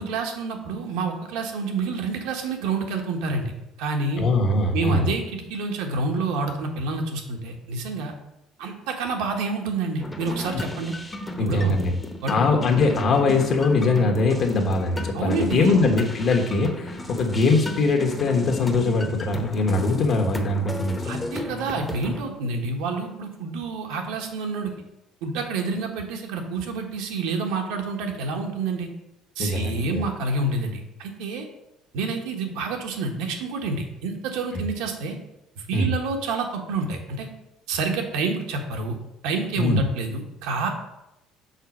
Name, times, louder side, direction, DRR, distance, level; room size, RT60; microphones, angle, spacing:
voice 1, 0.0-3.5 3.8-4.2 4.7-8.1 8.6-10.9 11.4-11.7 12.2-12.4 15.1-15.8 21.0-24.7 25.2-28.9 29.4-31.5 31.9-35.2 35.7-37.3 37.7-38.9 39.2-40.7, right 3 dB, 85° right, 3 dB, 1.2 m, -28 dB
voice 2, 4.2-5.1 10.4-10.6 11.4-11.9 12.3-21.0 29.4-30.0 34.5-34.6 35.7-35.9 39.6-39.8, left 3 dB, 50° left, 3 dB, 1.3 m, -22 dB
sound 1, 10.0-22.2, left 2 dB, 15° left, 0.8 m, -34 dB
5.6 x 4.0 x 6.0 m, 0.88 s
cardioid pair, 105°, 0 cm